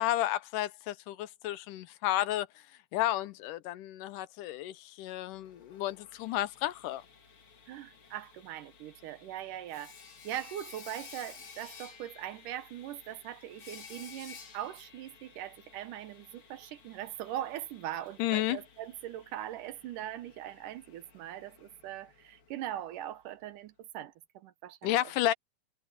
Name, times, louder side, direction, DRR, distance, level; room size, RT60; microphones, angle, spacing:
voice 1, 0.0-2.6 2.9-7.0 18.2-18.6 24.8-25.3, left 14 dB, 85° left, 2.5 m, -32 dB
Sawing, 5.3-23.1, left 5 dB, 45° left, 2.7 m, -54 dB
voice 2, 7.7-9.9 10.2-24.9, right 12 dB, 85° right, 2.6 m, -41 dB
omnidirectional pair, 3.6 m